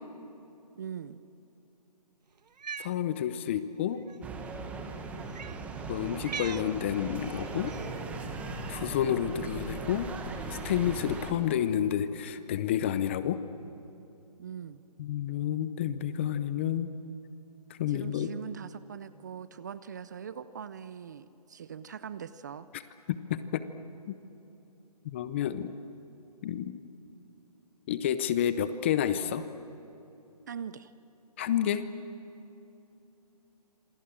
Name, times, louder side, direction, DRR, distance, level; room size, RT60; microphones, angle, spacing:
voice 1, 0.8-1.2 14.4-14.8 17.9-22.7 30.5-30.9, right 8 dB, 25° right, 15 dB, 0.5 m, -41 dB
Cat, 2.5-2.9 4.0-4.2 5.3-5.6 6.2-6.7 7.7-8.0, right 6 dB, 85° right, 0.5 m, -40 dB
voice 2, 2.8-4.0 5.9-7.7 8.7-10.1 10.5-13.4 15.0-16.9 17.7-18.3 23.1-23.6 24.1-24.2 25.0-25.7 26.4-26.8 27.9-29.5 31.4-31.8, left 10 dB, 20° left, 13 dB, 0.6 m, -30 dB
sound 1, 4.2-11.3, right 3 dB, 5° right, 1.3 m, -38 dB
27.0 x 23.0 x 8.7 m, 2.9 s
hypercardioid pair, 155°, 21 cm